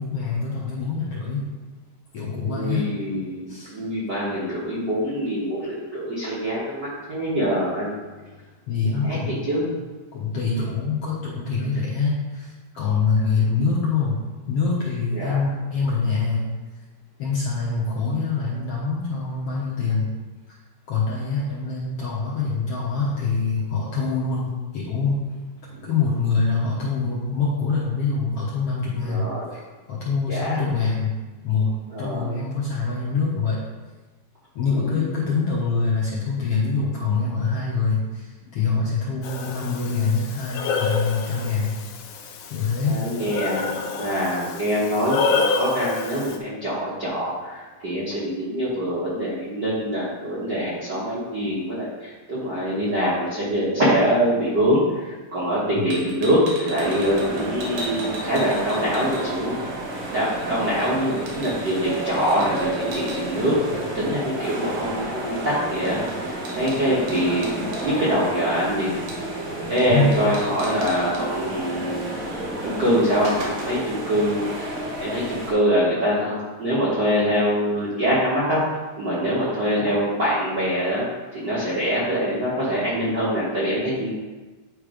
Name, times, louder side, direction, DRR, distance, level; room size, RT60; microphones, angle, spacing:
voice 1, 0.0-1.4 2.1-2.8 3.5-3.8 8.7-9.7 10.1-14.2 14.5-16.5 17.2-20.1 20.5-20.6 20.9-25.2 25.8-29.2 29.5-29.6 29.9-31.1 31.4-31.7 32.0-33.6 34.5-41.7 42.5-43.0 55.7-55.8 69.9-70.1, left 4 dB, 60° left, -6 dB, 1.6 m, -24 dB
voice 2, 2.4-7.9 9.0-9.2 9.5-9.7 15.1-15.4 25.7-25.9 29.1-29.5 30.3-30.6 31.9-32.3 34.7-34.9 42.8-59.8 60.1-68.9 69.7-72.3 72.6-74.7 75.0-78.6 79.0-81.0 81.3-84.1, equal, 50° right, -9 dB, 1.3 m, -24 dB
Breathing, 39.2-46.4, left 4 dB, 80° left, 2.0 m, -28 dB
sound 1, 55.9-59.6 59.9-63.2 65.4-65.5 65.7-67.9 69.1-69.4 69.8-69.9 70.1-71.2 72.3-72.4 72.8-74.0, right 1 dB, 70° right, 2.8 m, -38 dB
sound 2, 56.8-75.5, right 1 dB, 90° right, 0.9 m, -31 dB
9.2 x 3.3 x 5.0 m, 1.3 s
omnidirectional pair, 3.9 m